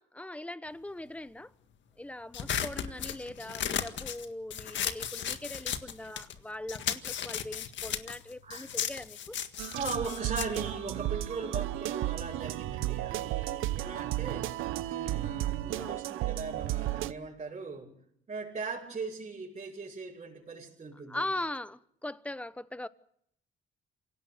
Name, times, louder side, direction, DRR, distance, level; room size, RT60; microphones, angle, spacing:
voice 1, 0.0-1.5 2.0-9.4 15.7-16.0 21.1-22.9, left 1 dB, 5° left, 1.1 m, -40 dB
sound 1, 2.3-6.4 6.7-11.5, left 9 dB, 70° left, 1.8 m, -35 dB
voice 2, 8.4-8.7 9.7-14.5 14.8-17.9 18.3-21.3, right 4 dB, 35° right, 7.0 m, -39 dB
sound 2, 9.6-17.1, right 15 dB, 90° right, 0.8 m, -33 dB
27.0 x 18.0 x 6.8 m
cardioid pair, 90°, 20 cm